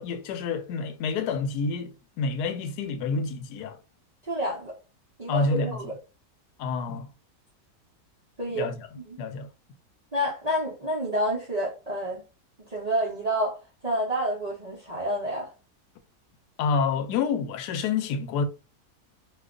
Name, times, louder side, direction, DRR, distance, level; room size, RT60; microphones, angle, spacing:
voice 1, 0.0-3.8 5.3-5.8 6.6-7.1 8.5-8.9 9.2-9.5 16.6-18.4, left 4 dB, 90° left, 1.1 m, -28 dB
voice 2, 4.2-4.7 5.2-5.9 8.4-8.7 9.0-9.2 10.1-12.2 12.7-13.6 13.8-15.5, equal, 40° right, 0.6 m, -29 dB
2.7 x 2.3 x 3.6 m
omnidirectional pair, 1.7 m